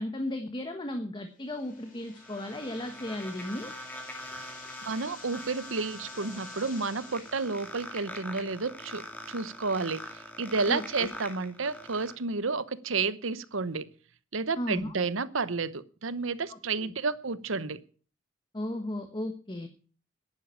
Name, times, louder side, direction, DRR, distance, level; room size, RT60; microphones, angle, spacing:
voice 1, 0.0-3.7 10.7-11.1 14.6-15.0 16.5-16.9 18.5-19.7, left 1 dB, 25° left, 7 dB, 1.2 m, -35 dB
sound 1, 1.4-8.4, left 4 dB, 45° left, 4.0 m, -51 dB
sound 2, 1.7-12.1, left 1 dB, 10° left, 2.4 m, -44 dB
voice 2, 4.9-13.9 14.3-17.8, right 4 dB, 85° right, 15 dB, 1.0 m, -31 dB
10.5 x 10.0 x 8.9 m, 0.41 s
head